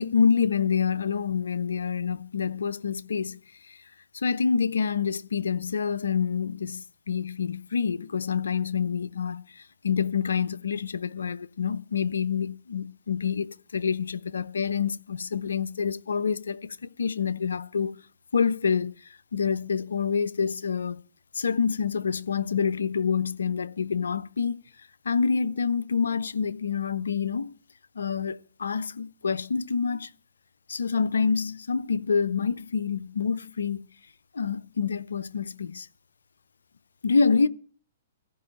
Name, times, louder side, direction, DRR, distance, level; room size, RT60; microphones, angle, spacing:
voice 1, 0.0-3.4 3.7-3.8 4.1-17.9 18.3-18.9 19.3-21.0 21.3-24.6 25.0-27.5 28.0-30.1 30.7-33.8 34.3-35.9 37.0-37.5, left 6 dB, 80° left, 0.6 m, -27 dB
14.5 x 5.4 x 8.9 m
hypercardioid pair, 120°, 0 cm